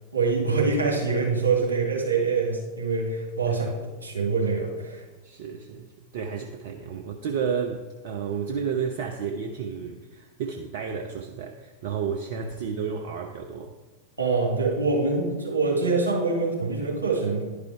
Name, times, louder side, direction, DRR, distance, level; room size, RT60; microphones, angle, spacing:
voice 1, 0.1-3.7 4.0-5.0 14.2-17.4, right 4 dB, 75° right, -2 dB, 2.3 m, -25 dB
voice 2, 5.2-13.7, right 6 dB, 55° right, 4 dB, 0.6 m, -32 dB
10.5 x 5.2 x 4.7 m, 1.3 s
figure-of-eight pair, 90°, 0 cm